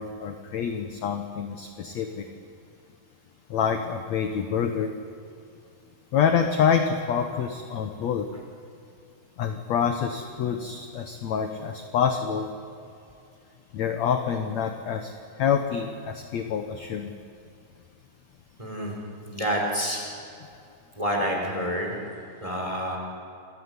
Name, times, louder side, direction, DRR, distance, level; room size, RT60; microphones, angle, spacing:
voice 1, 0.0-2.3 3.5-4.9 6.1-8.3 9.4-12.5 13.7-15.1 15.4-17.1, left 7 dB, 65° left, 6 dB, 1.8 m, -26 dB
voice 2, 18.6-18.9 19.3-20.0 21.0-21.9 22.4-23.0, equal, 10° right, 0 dB, 5.0 m, -28 dB
28.0 x 17.5 x 9.8 m, 2.5 s
omnidirectional pair, 4.5 m